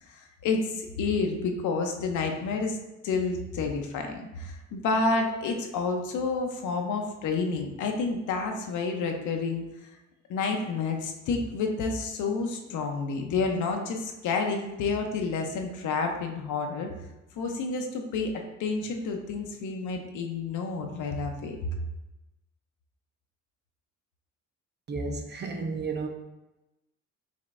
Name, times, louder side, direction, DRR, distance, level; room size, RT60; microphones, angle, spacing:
voice 1, 0.1-2.8 3.0-9.6 10.3-16.9 17.4-21.6, left 4 dB, 75° left, 3 dB, 0.7 m, -29 dB
voice 2, 24.9-26.1, right 3 dB, 35° right, 4 dB, 0.6 m, -32 dB
5.0 x 3.2 x 2.5 m, 1.0 s
cardioid pair, 90°, 30 cm